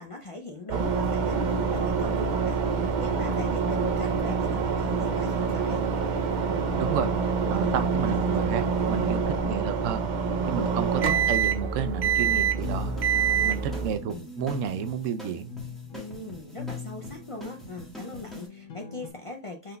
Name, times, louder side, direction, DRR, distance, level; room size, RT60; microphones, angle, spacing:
voice 1, 0.0-5.8 7.5-8.4 8.9-9.3 10.4-10.8 11.4-11.5 13.1-13.7 14.1-14.3 15.9-19.8, left 3 dB, 45° left, 0.4 m, -41 dB
sound 1, 0.7-13.9, right 6 dB, 55° right, 0.5 m, -26 dB
voice 2, 6.8-7.1 7.5-10.0 10.5-12.9 13.4-15.5, right 8 dB, 85° right, 1.0 m, -31 dB
sound 2, 8.7-19.1, left 5 dB, 85° left, 1.1 m, -43 dB
sound 3, 12.6-18.5, equal, ahead, 1.3 m, -44 dB
5.7 x 3.8 x 2.2 m
omnidirectional pair, 1.3 m